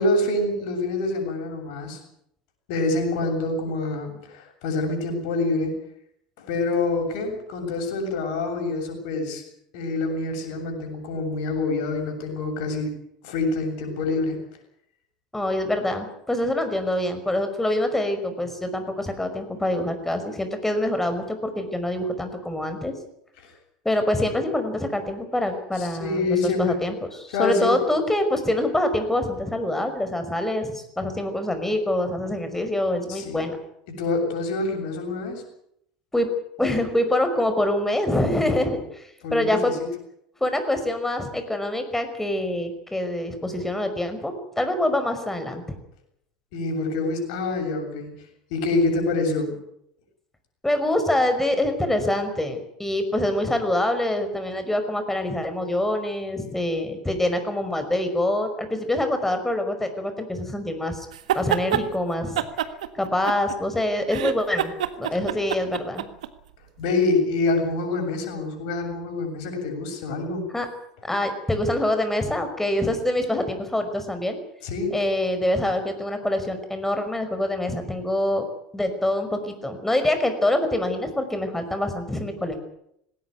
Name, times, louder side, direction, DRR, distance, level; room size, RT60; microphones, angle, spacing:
voice 1, 0.0-2.0 2.7-5.7 6.4-9.4 9.7-12.9 13.2-14.4 25.8-26.8 27.3-27.8 33.1-33.4 34.0-35.4 39.2-39.9 46.5-48.1 48.5-49.6 66.8-70.5 74.6-75.0, left 3 dB, 65° left, 4 dB, 7.4 m, -26 dB
voice 2, 15.3-22.9 23.8-33.6 36.1-36.3 36.6-39.7 40.4-45.8 50.6-61.1 61.3-62.5 62.9-66.1 70.5-70.7 71.0-74.4 74.9-78.4 78.7-82.6, left 1 dB, 10° left, 7 dB, 5.6 m, -25 dB
sound 1, 61.1-61.8 62.4-63.7 64.1-66.3, right 11 dB, 75° right, 1.6 m, -26 dB
19.0 x 18.0 x 9.5 m, 0.76 s
hypercardioid pair, 75°, 4 cm